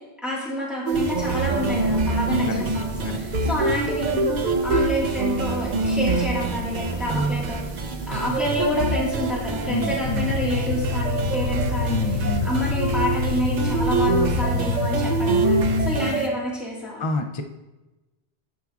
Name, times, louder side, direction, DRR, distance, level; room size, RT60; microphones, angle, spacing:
voice 1, 0.2-7.8 8.1-12.0 12.2-17.0, equal, ahead, -6 dB, 1.6 m, -28 dB
sound 1, 0.9-16.3, right 3 dB, 50° right, 0.7 m, -26 dB
sound 2, 0.9-14.6, right 2 dB, 75° right, 1.7 m, -35 dB
voice 2, 9.6-10.3 11.9-12.5 17.0-17.4, left 3 dB, 40° left, 5 dB, 0.4 m, -28 dB
sound 3, 10.0-16.0, left 4 dB, 75° left, 0.9 m, -26 dB
11.0 x 5.9 x 2.4 m, 1.1 s
omnidirectional pair, 1.1 m